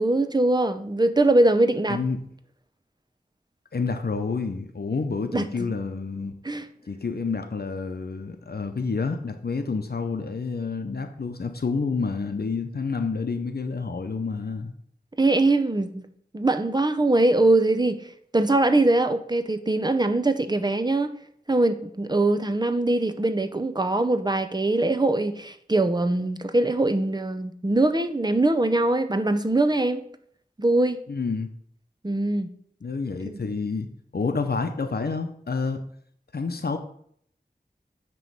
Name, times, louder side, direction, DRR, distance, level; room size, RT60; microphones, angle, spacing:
voice 1, 0.0-2.0 5.3-5.7 6.4-6.6 15.2-16.0 16.3-18.1 18.3-21.1 21.5-30.0 30.6-31.0 32.0-32.5 33.2-33.4, right 2 dB, 25° right, 0.6 m, -22 dB
voice 2, 1.9-2.2 3.7-6.3 6.9-14.7 31.1-31.5 32.8-33.9 34.1-35.8 36.3-36.8, left 4 dB, 75° left, 0.6 m, -29 dB
9.1 x 3.1 x 5.5 m
wide cardioid pair, 55°, 16 cm